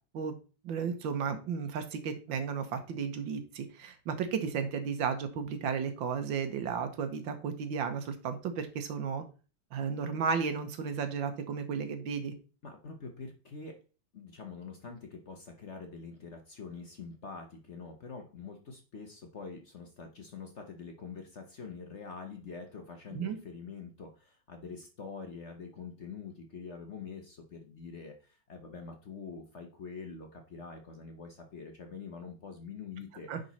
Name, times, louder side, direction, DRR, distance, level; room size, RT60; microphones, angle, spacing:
voice 1, 0.6-9.2 9.7-12.3 23.1-23.4 33.3-33.4, right 6 dB, 80° right, 8 dB, 1.8 m, -34 dB
voice 2, 12.6-13.8 14.1-33.3, left 5 dB, 45° left, 4 dB, 1.0 m, -45 dB
9.9 x 4.0 x 4.2 m, 0.35 s
omnidirectional pair, 2.1 m